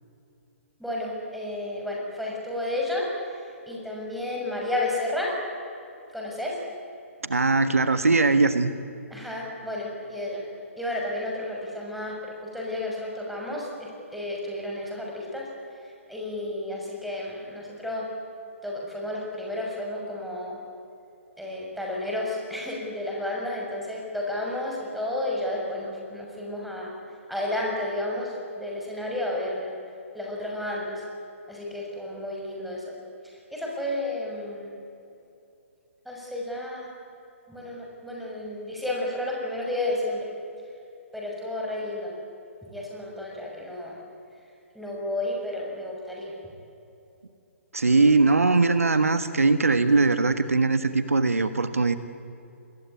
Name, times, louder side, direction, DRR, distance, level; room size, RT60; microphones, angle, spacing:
voice 1, 0.8-3.1 3.4-5.3 6.1-6.6 9.1-10.4 10.8-15.5 15.8-18.1 18.6-20.6 21.4-26.9 27.3-29.7 30.1-31.0 31.5-32.9 33.2-34.7 36.0-36.9 37.5-40.3 41.1-42.2 42.6-44.0 44.7-46.3, left 1 dB, ahead, -3 dB, 6.6 m, -32 dB
voice 2, 7.2-8.7 47.7-52.0, right 3 dB, 85° right, 11 dB, 1.6 m, -21 dB
26.0 x 20.5 x 9.8 m, 2.8 s
figure-of-eight pair, 130°, 8 cm